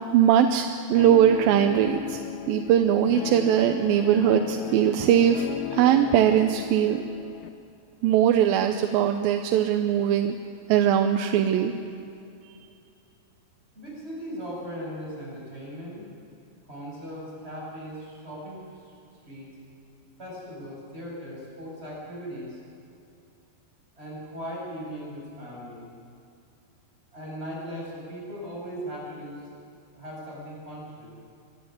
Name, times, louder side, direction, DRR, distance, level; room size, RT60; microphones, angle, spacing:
voice 1, 0.1-2.2 2.5-5.5 5.7-7.0 8.0-10.4 10.7-11.7, right 10 dB, 80° right, 6 dB, 2.4 m, -21 dB
Guitar, 0.9-7.5, left 11 dB, 75° left, 1.8 m, -35 dB
voice 2, 13.7-16.0 16.7-19.0 19.2-19.5 20.2-22.6 24.0-25.8 27.1-29.5 29.9-31.1, equal, 15° right, -5 dB, 7.8 m, -38 dB
24.0 x 13.0 x 9.8 m, 2.5 s
omnidirectional pair, 4.3 m